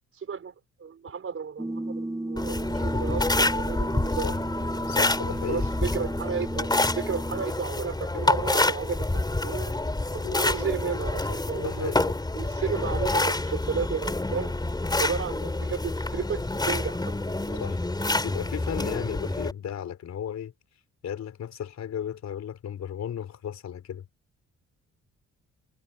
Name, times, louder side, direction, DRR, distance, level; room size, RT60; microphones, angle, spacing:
voice 1, 0.2-0.5 0.8-4.3 5.5-6.7 7.0-9.7 10.1-14.5 15.0-17.2 17.5-17.6, right 6 dB, 45° right, 5.3 m, -33 dB
sound 1, 1.6-7.4, right 1 dB, 10° right, 5.0 m, -34 dB
sound 2, 2.4-19.5, left 2 dB, 15° left, 3.9 m, -27 dB
voice 2, 4.9-5.7 10.2-10.4 11.6-12.1 17.6-17.8 18.2-20.5 21.0-24.1, left 9 dB, 60° left, 3.6 m, -35 dB
cardioid pair, 90°, 30 cm